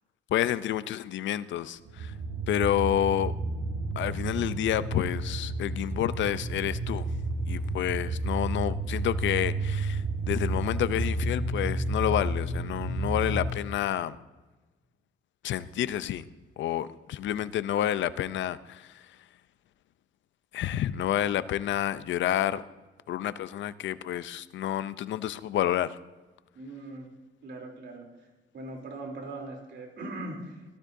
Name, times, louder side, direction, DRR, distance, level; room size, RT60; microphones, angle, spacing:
voice 1, 0.3-2.1 2.5-3.3 4.0-7.1 7.5-14.2 15.4-16.2 16.6-19.0 20.5-22.6 23.1-26.0, left 11 dB, 70° left, 15 dB, 0.6 m, -29 dB
sound 1, 1.8-13.5, right 2 dB, 80° right, 1.5 m, -31 dB
voice 2, 26.5-27.1 27.4-28.3 28.5-30.7, right 2 dB, 60° right, 1 dB, 3.3 m, -40 dB
17.0 x 12.5 x 2.7 m, 1.1 s
cardioid pair, 90°, 20 cm